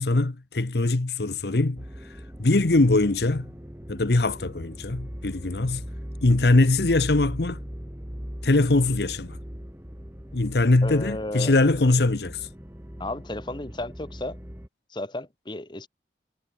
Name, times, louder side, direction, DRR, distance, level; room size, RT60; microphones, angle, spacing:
voice 1, 0.0-1.8 2.4-3.5 3.9-5.8 6.2-7.6 8.4-9.4 10.3-12.5, left 2 dB, 65° left, 1.0 m, -22 dB
sound 1, 1.8-14.7, equal, 15° right, 2.4 m, -39 dB
voice 2, 10.8-11.8 13.0-14.4 14.9-15.9, left 1 dB, 25° left, 1.3 m, -33 dB
head